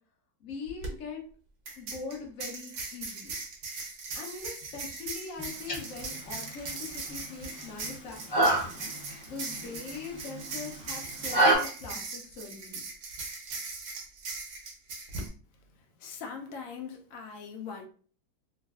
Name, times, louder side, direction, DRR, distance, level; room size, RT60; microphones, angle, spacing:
voice 1, 0.4-1.2 1.8-3.4 4.1-8.6 9.2-12.8, left 4 dB, 55° left, 1.0 m, -41 dB
sound 1, 0.7-0.9 1.7-15.3, right 3 dB, 70° right, 0.7 m, -39 dB
sound 2, 5.4-11.5, right 2 dB, 20° left, 1.2 m, -30 dB
voice 2, 16.0-17.9, left 6 dB, 85° left, 0.7 m, -41 dB
3.0 x 2.6 x 2.3 m
omnidirectional pair, 2.0 m